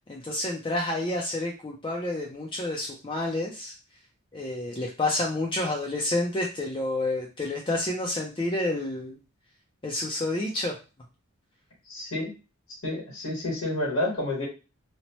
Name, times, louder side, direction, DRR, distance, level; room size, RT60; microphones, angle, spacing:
voice 1, 0.1-3.7 4.3-9.2 9.8-10.7, left 2 dB, 20° left, 0 dB, 0.4 m, -29 dB
voice 2, 11.9-12.3 12.7-14.4, left 1 dB, 70° left, -6 dB, 1.4 m, -29 dB
2.8 x 2.0 x 2.9 m, 0.30 s
head